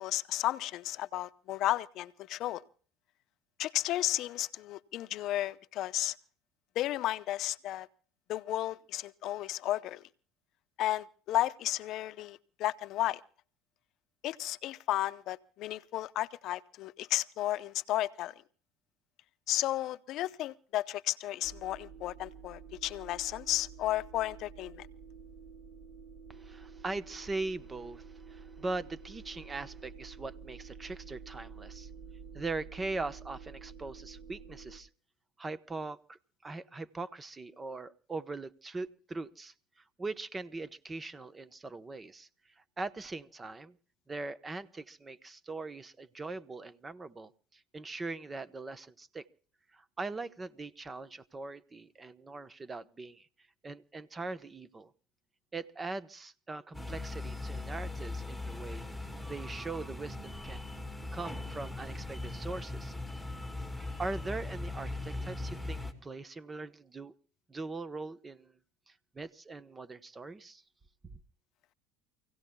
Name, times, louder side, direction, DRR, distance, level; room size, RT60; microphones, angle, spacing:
voice 1, 0.0-2.6 3.6-6.1 6.8-7.9 8.3-10.0 10.8-13.2 14.2-18.3 19.5-24.9, left 14 dB, 55° left, 0.7 m, -33 dB
sound 1, 21.4-34.8, right 6 dB, 50° right, 4.7 m, -50 dB
voice 2, 26.3-31.9 32.3-34.9 35.4-42.3 42.6-43.8 44.1-49.3 49.7-53.3 53.6-54.9 55.5-60.6 61.1-63.3 64.0-67.1 67.5-68.5 68.9-70.6 71.0-71.2, right 3 dB, 20° right, 1.0 m, -41 dB
sound 2, 56.7-65.9, left 2 dB, ahead, 2.6 m, -39 dB
29.0 x 17.0 x 2.3 m
supercardioid pair, 105°, 0 cm